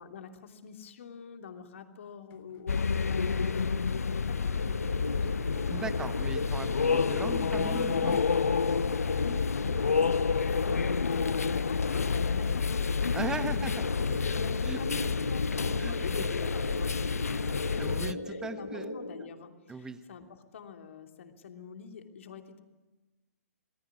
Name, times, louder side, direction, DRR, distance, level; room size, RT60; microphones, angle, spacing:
voice 1, 0.0-5.5 9.1-13.0 13.4-22.6, left 6 dB, 50° left, 5 dB, 3.0 m, -46 dB
sound 1, 2.3-8.3, left 11 dB, 20° left, 1.2 m, -48 dB
sound 2, 2.7-18.1, left 5 dB, 70° left, 0.8 m, -29 dB
sound 3, 4.6-19.3, left 2 dB, 85° left, 2.1 m, -37 dB
voice 2, 5.7-8.2 13.1-13.7 14.6-14.8 15.8-16.0 17.8-18.9 19.2-19.3 19.7-20.0, right 4 dB, 10° right, 12 dB, 1.3 m, -38 dB
27.0 x 19.5 x 9.7 m, 1.1 s
figure-of-eight pair, 125°, 9 cm